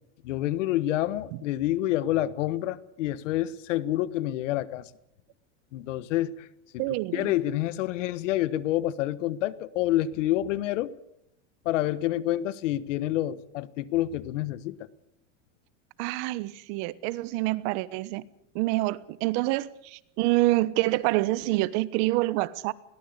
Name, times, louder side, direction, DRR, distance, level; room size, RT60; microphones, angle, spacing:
voice 1, 0.2-4.9 5.7-6.5 6.7-6.8 7.1-10.9 11.6-14.8, left 14 dB, 80° left, 1.4 m, -28 dB
voice 2, 6.8-7.3 16.0-18.3 18.5-22.7, right 19 dB, 60° right, 1.3 m, -27 dB
21.5 x 17.5 x 8.3 m
supercardioid pair, 125°, 37 cm